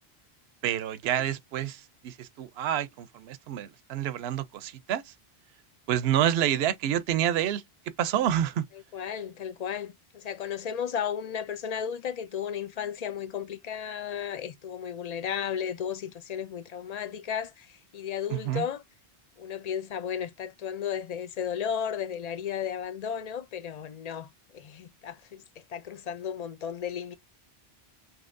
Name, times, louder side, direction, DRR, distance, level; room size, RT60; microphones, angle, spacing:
voice 1, 0.6-5.1 5.9-7.6 8.0-8.7 18.3-18.6, right 11 dB, 75° right, 0.8 m, -28 dB
voice 2, 8.9-18.8 19.4-25.4 25.7-27.1, left 8 dB, 50° left, 0.5 m, -34 dB
5.5 x 3.0 x 2.6 m
omnidirectional pair, 1.1 m